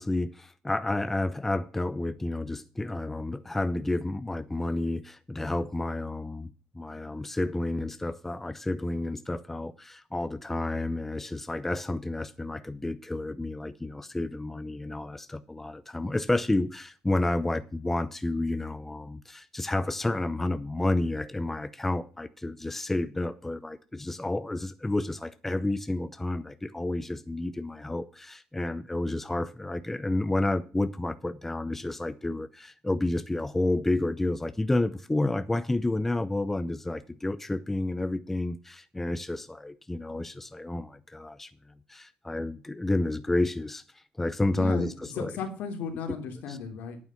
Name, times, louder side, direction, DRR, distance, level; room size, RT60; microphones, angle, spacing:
voice 1, 0.0-41.5 41.9-45.3, left 2 dB, 10° left, 0.7 m, -30 dB
voice 2, 44.5-47.0, left 5 dB, 75° left, 3.3 m, -35 dB
9.5 x 8.9 x 5.9 m
cardioid pair, 135°, 3 cm